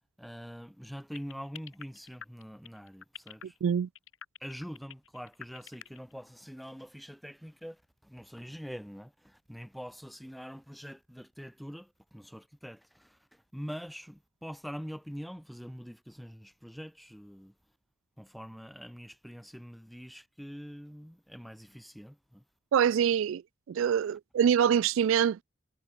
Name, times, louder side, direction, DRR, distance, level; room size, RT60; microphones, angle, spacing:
voice 1, 0.2-3.6 4.4-17.5 18.2-22.4, equal, ahead, 2.3 m, -44 dB
sound 1, 1.1-6.1, left 8 dB, 70° left, 4.7 m, -46 dB
voice 2, 22.7-23.4 23.7-25.4, right 8 dB, 70° right, 0.3 m, -25 dB
head